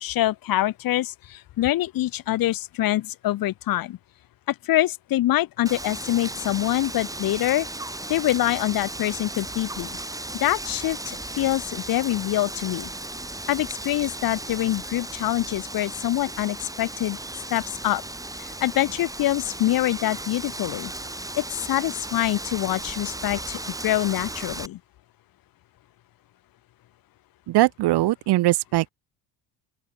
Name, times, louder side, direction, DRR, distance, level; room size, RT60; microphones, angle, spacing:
voice 1, 0.0-4.0 4.5-7.7 8.1-10.0 10.3-12.9 13.5-17.2 17.5-18.0 18.4-20.9 21.4-24.8, left 14 dB, 50° left, 0.9 m, -25 dB
Wind, 5.7-24.7, right 2 dB, 5° right, 4.3 m, -36 dB
voice 2, 27.5-28.9, right 16 dB, 60° right, 1.1 m, -21 dB
open air
cardioid pair, 125°, 46 cm